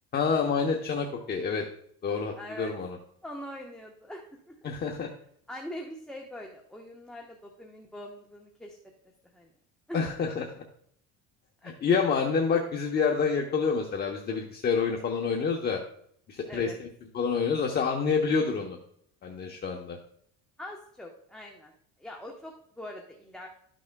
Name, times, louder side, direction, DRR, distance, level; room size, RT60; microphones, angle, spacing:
voice 1, 0.1-1.6 2.0-3.0 4.6-5.1 9.9-10.6 11.8-15.8 16.3-16.9 17.1-18.8 19.2-20.0, left 5 dB, 35° left, 0 dB, 1.0 m, -28 dB
voice 2, 2.4-2.7 3.2-4.2 4.5-4.7 5.5-8.8 9.3-9.5 9.9-10.0 11.6-11.7 16.5-16.8 20.6-21.7 22.0-23.5, left 1 dB, 5° left, -1 dB, 1.1 m, -42 dB
13.0 x 6.2 x 2.3 m, 0.66 s
cardioid pair, 130°, 29 cm